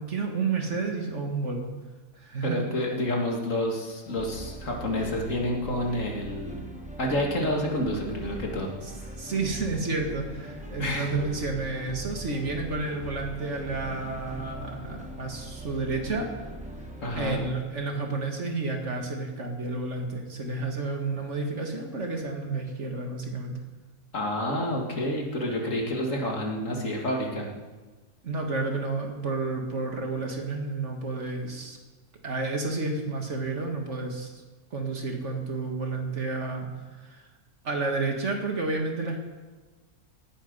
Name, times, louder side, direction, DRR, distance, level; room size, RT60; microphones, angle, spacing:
voice 1, 0.0-1.7 2.2-2.6 9.2-16.3 17.1-23.6 28.2-31.8 32.2-34.4 34.7-37.3 37.6-39.2, right 3 dB, 55° right, 3 dB, 1.9 m, -31 dB
voice 2, 2.4-6.6 7.0-8.7 8.9-9.2 10.8-11.1 17.0-17.4 24.1-27.5, left 1 dB, 60° left, 0 dB, 2.5 m, -29 dB
sound 1, 4.1-17.5, right 1 dB, 5° right, 1.3 m, -40 dB
18.0 x 9.1 x 5.3 m, 1.3 s
omnidirectional pair, 1.5 m